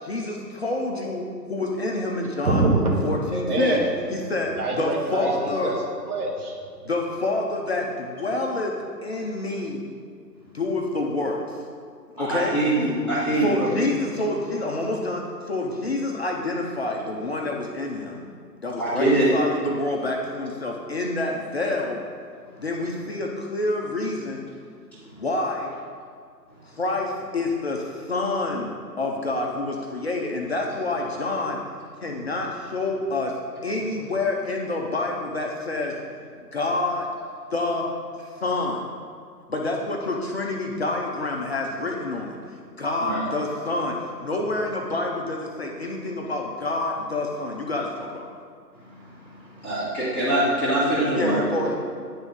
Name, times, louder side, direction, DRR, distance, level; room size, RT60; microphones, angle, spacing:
voice 1, 0.0-2.6 3.0-3.8 4.1-5.8 6.8-8.7 9.0-9.8 10.5-11.6 12.1-12.6 13.3-18.2 18.6-22.0 22.6-24.4 25.1-25.7 26.8-31.6 32.0-33.3 33.6-35.9 36.4-37.1 37.5-37.9 38.4-38.9 39.5-42.4 42.8-48.3 51.1-51.8, left 2 dB, 40° left, 0 dB, 0.6 m, -27 dB
voice 2, 2.4-3.9 4.6-6.6, right 2 dB, 60° right, -2 dB, 1.7 m, -24 dB
voice 3, 12.2-13.7 18.8-19.3 43.0-43.2 49.6-51.7, right 1 dB, 5° left, -13 dB, 1.3 m, -23 dB
9.5 x 3.6 x 5.4 m, 2.1 s
figure-of-eight pair, 145°, 50 cm